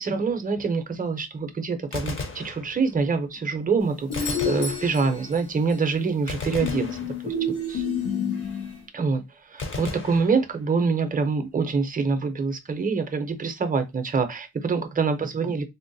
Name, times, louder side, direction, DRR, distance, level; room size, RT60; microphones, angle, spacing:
voice 1, 0.0-6.9 7.2-7.3 7.7-7.8 8.9-15.6, right 4 dB, 25° right, 0.6 m, -25 dB
Gunshot gunfire, 1.8-3.1 4.1-5.4 6.3-7.7 9.6-10.9, left 3 dB, 35° left, 0.7 m, -35 dB
sound 1, 4.1-5.4 6.6-8.8, left 4 dB, 85° left, 1.4 m, -29 dB
Doorbell, 4.1-6.0 10.0-10.1, left 3 dB, 65° left, 1.3 m, -38 dB
3.7 x 2.1 x 2.6 m
cardioid pair, 125°, 37 cm